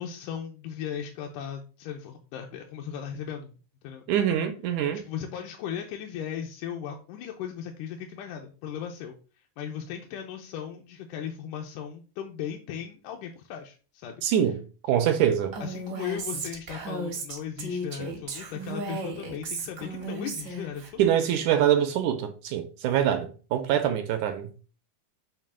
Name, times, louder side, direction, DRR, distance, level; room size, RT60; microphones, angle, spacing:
voice 1, 0.0-3.5 3.8-4.1 5.1-9.2 9.6-14.2 15.6-21.1, left 8 dB, 75° left, 2.2 m, -37 dB
voice 2, 4.1-5.0 14.2-14.6 14.9-15.5 21.0-24.5, right 10 dB, 75° right, 2.0 m, -24 dB
Female speech woman speaking, 15.5-20.9, right 2 dB, 55° right, 1.2 m, -35 dB
6.7 x 3.3 x 6.1 m
omnidirectional pair, 3.9 m